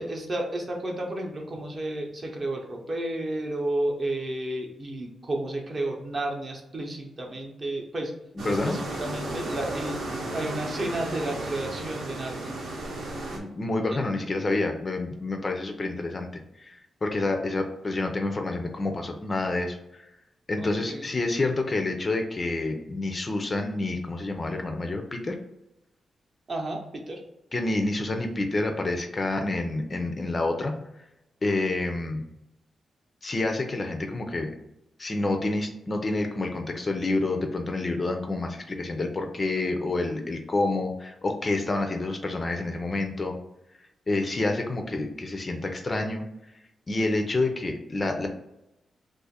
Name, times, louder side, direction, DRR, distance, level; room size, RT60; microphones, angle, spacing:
voice 1, 0.0-8.1 8.5-10.0 10.3-12.6 13.9-14.0 20.6-21.1 26.5-27.2, right 1 dB, 35° right, 1 dB, 0.7 m, -32 dB
voice 2, 8.4-8.8 13.3-20.1 20.5-25.4 27.5-30.7 31.4-32.3 33.2-34.5 35.0-43.3 44.1-46.2 46.9-48.3, left 2 dB, 30° left, 4 dB, 0.4 m, -28 dB
sound 1, 8.4-13.4, right 2 dB, 75° right, 0.8 m, -34 dB
2.5 x 2.4 x 4.0 m, 0.89 s
wide cardioid pair, 130°, 0 cm